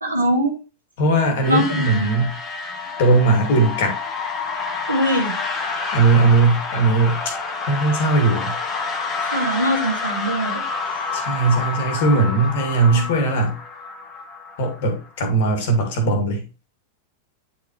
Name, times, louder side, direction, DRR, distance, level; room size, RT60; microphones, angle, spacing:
voice 1, 0.0-0.5 1.5-2.2 4.9-5.3 9.2-10.6 12.9-13.0, equal, 85° right, 2.2 m, -22 dB
voice 2, 1.0-2.3 3.0-4.0 5.9-7.2 7.6-8.5 11.1-13.6 14.6-16.4, right 3 dB, 50° left, 2.3 m, -18 dB
sound 1, 1.3-15.1, left 4 dB, 30° left, 1.7 m, -28 dB
10.0 x 4.8 x 3.2 m
figure-of-eight pair, 90°, 0 cm